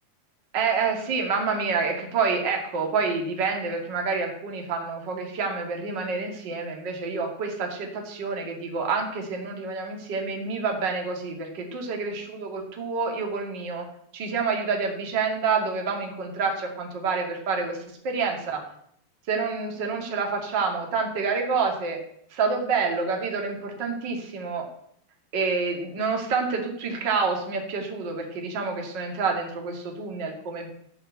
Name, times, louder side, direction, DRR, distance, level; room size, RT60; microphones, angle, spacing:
voice 1, 0.5-13.9 14.1-17.8 18.0-18.6 19.3-22.0 22.3-24.7 25.3-30.7, right 4 dB, 35° right, 2 dB, 2.1 m, -28 dB
15.0 x 5.7 x 8.2 m, 0.69 s
omnidirectional pair, 5.0 m